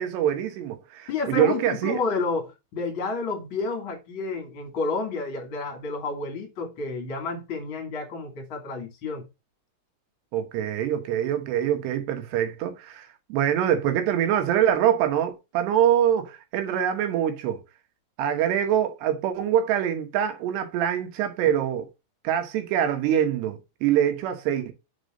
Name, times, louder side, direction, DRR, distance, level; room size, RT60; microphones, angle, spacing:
voice 1, 0.0-2.0 10.3-17.6 18.2-21.9 22.2-24.7, right 10 dB, 80° right, 3.4 m, -24 dB
voice 2, 1.1-9.3, left 4 dB, 35° left, 2.7 m, -30 dB
6.9 x 4.5 x 6.5 m
omnidirectional pair, 4.8 m